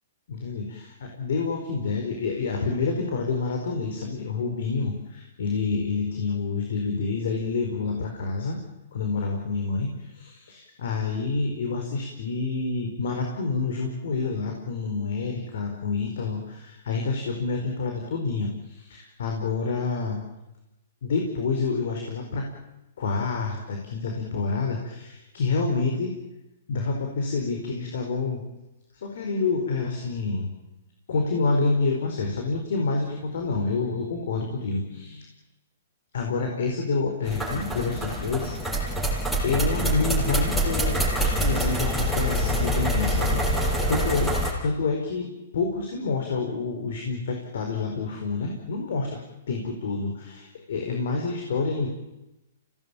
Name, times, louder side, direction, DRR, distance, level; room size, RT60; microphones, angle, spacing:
voice 1, 0.3-8.6 8.9-20.2 21.0-22.5 23.0-26.2 26.7-28.5 29.0-30.5 31.1-35.3 36.1-39.0 39.4-44.4 44.6-49.2 49.5-51.9, left 4 dB, 70° left, 2 dB, 4.8 m, -28 dB
sound 1, 37.3-44.5, equal, 5° left, 6.6 m, -25 dB
26.0 x 18.5 x 9.0 m, 0.97 s
hypercardioid pair, 140°, 0 cm